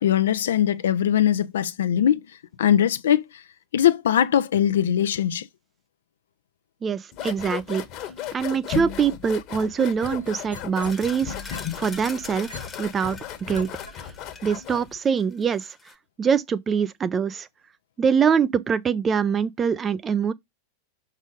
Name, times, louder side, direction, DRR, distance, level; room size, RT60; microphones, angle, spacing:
voice 1, 0.0-2.2 2.6-3.4 3.7-5.5, left 10 dB, 60° left, 0.6 m, -21 dB
voice 2, 6.8-7.8 8.3-13.2 13.5-13.7 14.4-15.8 16.2-17.5 18.0-20.3, right 6 dB, 20° right, 0.5 m, -24 dB
sound 1, 7.1-14.9, left 10 dB, 40° left, 1.4 m, -35 dB
sound 2, 9.5-11.1 11.5-13.9 14.5-14.6, right 2 dB, 85° right, 1.9 m, -41 dB
sound 3, 10.8-15.9, left 5 dB, 15° left, 1.2 m, -44 dB
6.2 x 5.5 x 3.6 m
figure-of-eight pair, 90°, 0 cm